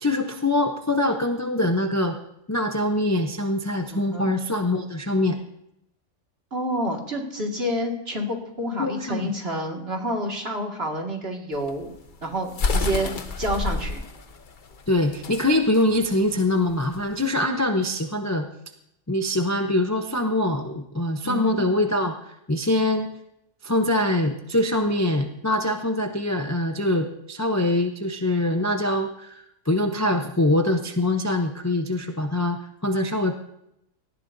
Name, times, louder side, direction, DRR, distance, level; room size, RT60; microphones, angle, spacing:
voice 1, 0.0-2.2 2.5-5.4 8.8-9.3 12.9-13.0 14.9-18.5 19.1-23.1 23.6-33.4, left 1 dB, 15° left, 4 dB, 0.6 m, -24 dB
voice 2, 3.9-4.3 6.5-11.9 12.2-14.0 21.2-21.6, equal, 45° right, 0 dB, 2.3 m, -29 dB
sound 1, 11.5-17.1, left 3 dB, 40° left, 0.9 m, -29 dB
18.5 x 14.0 x 2.7 m, 0.79 s
omnidirectional pair, 1.5 m